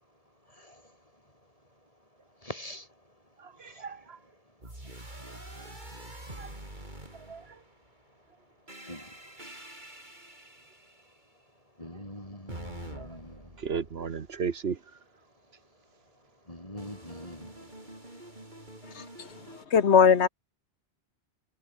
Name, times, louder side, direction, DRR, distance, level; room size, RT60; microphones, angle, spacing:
voice 1, 0.5-1.0 2.4-2.9 3.6-3.9 8.8-9.4 11.8-13.6 16.5-17.9, left 1 dB, 30° left, 7.3 m, -44 dB
voice 2, 3.4-4.2 6.3-6.5 7.1-7.6 12.9-13.2 13.6-14.8, right 6 dB, 70° right, 1.4 m, -35 dB
sound 1, 4.6-7.9 8.7-11.2 12.5-14.6 16.8-19.6, right 1 dB, 45° right, 6.1 m, -46 dB
voice 3, 18.9-20.3, left 6 dB, 90° left, 1.5 m, -22 dB
omnidirectional pair, 1.1 m